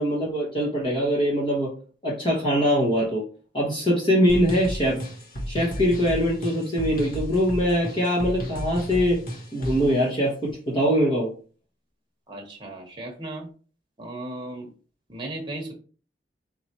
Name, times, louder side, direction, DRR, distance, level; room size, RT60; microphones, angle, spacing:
voice 1, 0.0-1.7 2.0-3.3 3.5-5.0 5.5-9.2 9.5-11.3, equal, 25° left, -5 dB, 1.2 m, -22 dB
sound 1, 4.3-9.9, equal, 50° left, 1.2 m, -33 dB
voice 2, 12.3-13.5 14.0-14.7 15.1-15.7, right 2 dB, 25° right, 0 dB, 1.1 m, -36 dB
4.3 x 3.9 x 3.0 m, 0.39 s
head